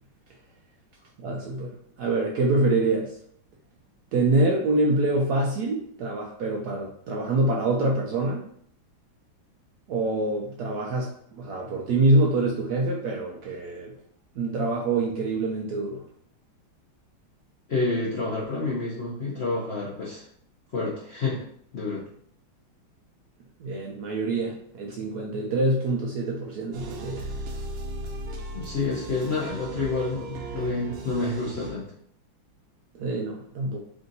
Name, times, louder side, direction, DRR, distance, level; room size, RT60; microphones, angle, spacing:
voice 1, 1.2-3.1 4.1-8.4 9.9-13.9 14.4-16.0 23.6-27.3 32.9-33.8, right 2 dB, 75° right, -1 dB, 0.9 m, -25 dB
voice 2, 17.7-20.3 20.7-22.0 28.5-31.9, left 3 dB, 70° left, -4 dB, 0.6 m, -29 dB
sound 1, 26.7-31.7, right 2 dB, 90° right, 1.5 m, -37 dB
3.7 x 2.6 x 3.9 m, 0.65 s
omnidirectional pair, 2.2 m